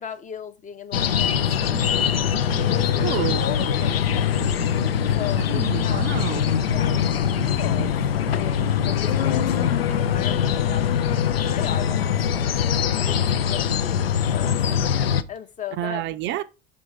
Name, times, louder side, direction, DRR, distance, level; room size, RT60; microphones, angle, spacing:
voice 1, 0.0-1.8 2.6-3.1 3.4-4.6 5.2-6.1 6.6-8.0 8.3-12.2 12.8-14.7 15.3-16.1, left 8 dB, 25° left, 0.7 m, -36 dB
sound 1, 0.9-15.2, left 9 dB, 75° left, 0.5 m, -22 dB
sound 2, 1.5-15.1, right 5 dB, 75° right, 0.8 m, -39 dB
voice 2, 3.0-3.4 5.5-6.4 15.8-16.4, right 13 dB, 40° right, 0.5 m, -28 dB
5.3 x 5.3 x 4.9 m
figure-of-eight pair, 70°, 30 cm